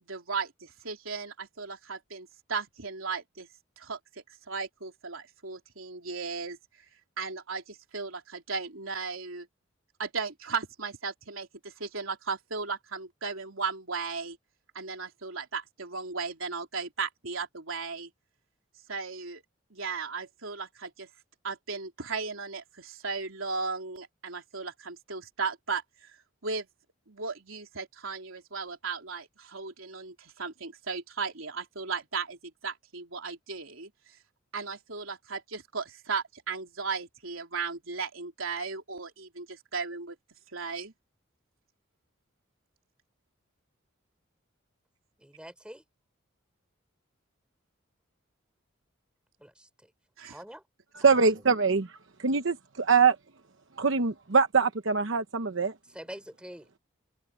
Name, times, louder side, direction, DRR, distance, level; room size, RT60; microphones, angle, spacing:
voice 1, 0.1-3.5 3.8-4.0 4.5-6.6 7.2-9.5 10.0-14.4 14.7-18.1 18.9-19.4 19.7-21.1 21.4-26.2 26.4-26.7 27.1-33.9 34.5-40.2 40.5-40.9 50.2-50.4, right 5 dB, 90° right, 3.6 m, -36 dB
voice 2, 45.2-45.8 49.4-49.9 50.3-50.6 55.9-56.7, equal, 5° right, 4.2 m, -45 dB
voice 3, 50.9-53.2 53.8-55.7, right 5 dB, 70° right, 1.0 m, -24 dB
head